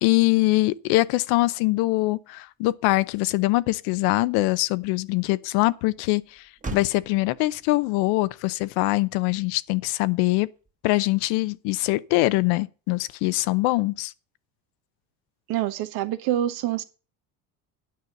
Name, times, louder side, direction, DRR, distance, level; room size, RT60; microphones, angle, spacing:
voice 1, 0.0-6.4 6.7-10.5 10.8-14.1, left 20 dB, 85° left, 0.7 m, -23 dB
Motor vehicle (road), 2.5-11.2, right 3 dB, 20° right, 1.3 m, -45 dB
voice 2, 15.5-16.8, right 12 dB, 70° right, 1.1 m, -26 dB
9.6 x 5.5 x 6.5 m
cardioid pair, 105°, 38 cm